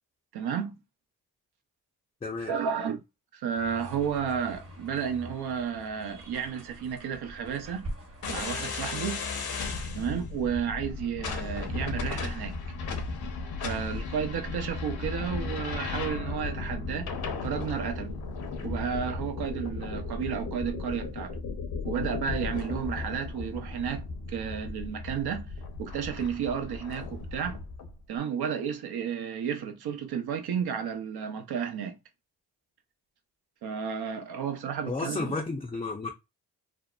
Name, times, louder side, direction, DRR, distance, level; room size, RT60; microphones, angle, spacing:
voice 1, 0.3-0.8 2.5-3.0 3.3-7.9 8.3-9.2 9.9-12.6 13.6-17.1 17.4-18.1 18.6-21.4 21.8-25.5 25.8-27.6 28.1-32.0 33.6-35.4, right 7 dB, 65° right, 0.7 m, -32 dB
voice 2, 2.2-2.5 34.9-36.1, left 3 dB, 15° left, 0.5 m, -32 dB
sound 1, 3.5-9.2, equal, 35° right, 1.1 m, -44 dB
sound 2, 8.2-27.9, left 4 dB, 65° left, 0.8 m, -35 dB
2.8 x 2.0 x 2.3 m
supercardioid pair, 50°, 41 cm